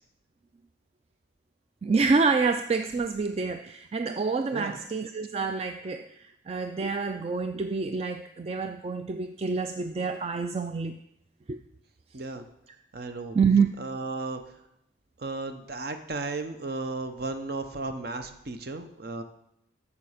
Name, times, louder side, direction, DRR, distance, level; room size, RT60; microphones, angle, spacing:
voice 1, 1.8-11.0 11.5-11.6 13.3-13.7, right 4 dB, 30° right, 7 dB, 0.3 m, -27 dB
voice 2, 12.1-12.4 12.9-13.4 13.8-14.4 15.2-19.2, right 3 dB, 50° right, 7 dB, 0.8 m, -34 dB
11.0 x 7.1 x 5.0 m, 0.81 s
head